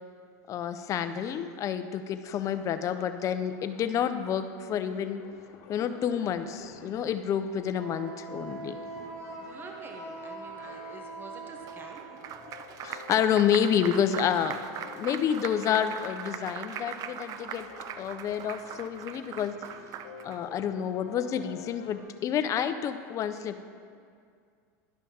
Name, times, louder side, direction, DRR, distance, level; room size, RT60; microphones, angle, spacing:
voice 1, 0.5-5.2 5.7-8.7 12.8-14.6 14.8-17.7 18.0-19.5 20.2-23.6, left 8 dB, 35° left, 10 dB, 0.5 m, -29 dB
sound 1, 2.2-22.0, left 6 dB, 65° left, 0.9 m, -51 dB
Wind instrument woodwind instrument, 7.8-12.2, right 4 dB, 75° right, 1.3 m, -42 dB
voice 2, 9.4-12.0, right 3 dB, 20° right, 2 dB, 0.9 m, -47 dB
Applause, 11.7-20.4, right 9 dB, 40° right, 0.4 m, -40 dB
11.0 x 5.5 x 4.2 m, 2.2 s
supercardioid pair, 125°, 9 cm